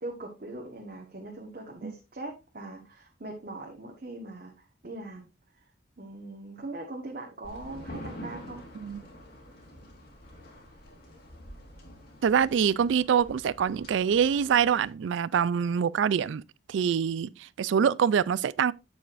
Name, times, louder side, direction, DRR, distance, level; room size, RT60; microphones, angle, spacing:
voice 1, 0.0-5.3 5.5-5.6 6.0-8.7, right 2 dB, 50° right, 1.3 m, -41 dB
sound 1, 7.4-14.9, equal, 50° left, 2.4 m, -46 dB
voice 2, 12.2-16.4 16.7-18.7, right 7 dB, 75° right, 0.3 m, -25 dB
8.5 x 7.5 x 2.5 m
head